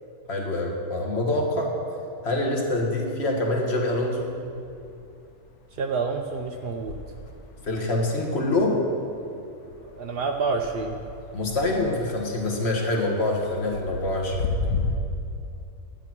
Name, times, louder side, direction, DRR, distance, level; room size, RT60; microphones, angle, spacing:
voice 1, 0.3-1.7 2.2-4.3 7.6-8.8 11.3-14.5, left 2 dB, 45° left, 0 dB, 1.8 m, -25 dB
sound 1, 1.7-2.9 3.2-14.9, left 4 dB, 80° left, 1.4 m, -37 dB
voice 2, 5.8-7.0 10.0-11.0, right 4 dB, 65° right, 3 dB, 0.6 m, -28 dB
12.0 x 9.0 x 6.0 m, 2.7 s
omnidirectional pair, 1.6 m